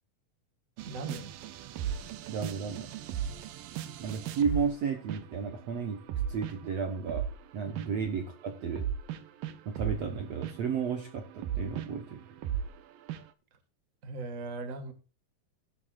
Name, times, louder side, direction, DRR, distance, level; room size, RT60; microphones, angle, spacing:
voice 1, 0.8-1.3 7.7-7.8 14.0-14.9, right 3 dB, 35° right, 8 dB, 1.5 m, -38 dB
sound 1, 0.8-4.8 5.1-5.5 5.9-7.4 7.8-8.0 8.8-12.8 13.1-13.2, right 9 dB, 75° right, 2.7 m, -36 dB
voice 2, 2.3-2.9 4.0-6.0 6.3-7.3 7.5-8.9 9.7-12.2, right 6 dB, 60° right, 6 dB, 1.9 m, -33 dB
14.0 x 11.5 x 2.5 m, 0.34 s
omnidirectional pair, 4.1 m